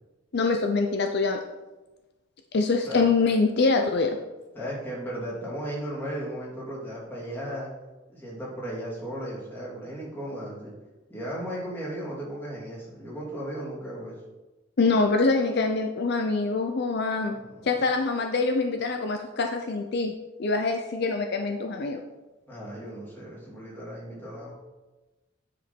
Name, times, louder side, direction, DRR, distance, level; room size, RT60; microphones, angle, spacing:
voice 1, 0.3-1.4 2.5-4.2 14.8-17.4 17.6-20.1 20.4-22.0, left 3 dB, 60° left, 5 dB, 0.6 m, -24 dB
voice 2, 4.5-7.7 8.1-10.7 11.1-14.2 17.3-17.7 22.5-24.5, equal, 10° left, -6 dB, 2.9 m, -36 dB
9.4 x 5.2 x 4.4 m, 1.1 s
head